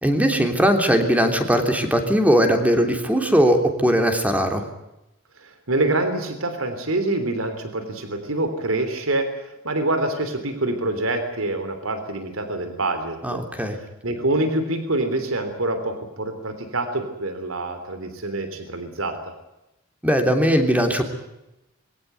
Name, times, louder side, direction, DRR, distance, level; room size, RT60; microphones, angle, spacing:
voice 1, 0.0-4.6 13.2-13.8 20.0-21.0, equal, 5° right, 5 dB, 3.3 m, -19 dB
voice 2, 5.4-13.4 14.0-19.2, right 2 dB, 90° right, 9 dB, 3.4 m, -26 dB
22.5 x 18.0 x 9.4 m, 0.92 s
head